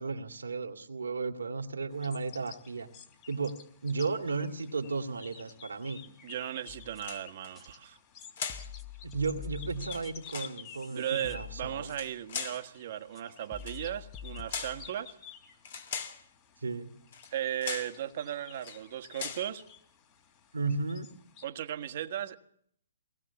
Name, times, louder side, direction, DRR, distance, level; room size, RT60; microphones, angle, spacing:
voice 1, 0.0-2.9 3.3-6.0 9.0-11.9 16.6-16.9 20.5-21.1, right 4 dB, 85° right, 2.3 m, -34 dB
sound 1, 1.9-21.5, left 8 dB, 35° left, 3.3 m, -53 dB
voice 2, 6.2-8.0 10.9-15.2 17.3-19.6 21.4-22.4, right 11 dB, 50° right, 1.5 m, -36 dB
sound 2, 6.7-7.2 7.6-7.7 8.2-10.4 10.7-12.2 12.5-12.6 13.2-13.3 13.5-14.9, left 8 dB, 15° left, 1.3 m, -46 dB
sound 3, 6.9-7.5 8.4-8.7 9.7-10.6 11.8-12.6 13.6-13.8 14.5-14.8 15.6-16.2 17.1-17.3 17.6-18.0 18.5-18.8 19.1-19.5, left 6 dB, 55° left, 3.0 m, -39 dB
23.0 x 18.5 x 7.1 m
hypercardioid pair, 140°, 0 cm